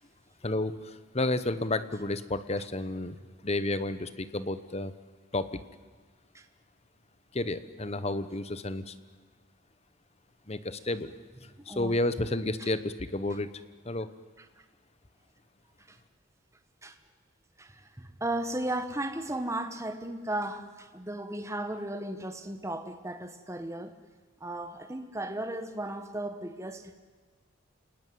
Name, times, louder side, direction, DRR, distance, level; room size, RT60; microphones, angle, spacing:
voice 1, 0.4-4.9 5.3-5.6 7.3-8.9 10.5-11.1 11.7-13.5 13.8-14.1, left 2 dB, 30° left, 1.0 m, -31 dB
voice 2, 11.5-12.0 12.6-12.7 14.4-14.5 15.9-16.0 16.8-17.0 17.6-24.0 24.4-26.9, right 1 dB, 15° right, 1.2 m, -35 dB
29.0 x 19.5 x 9.4 m
head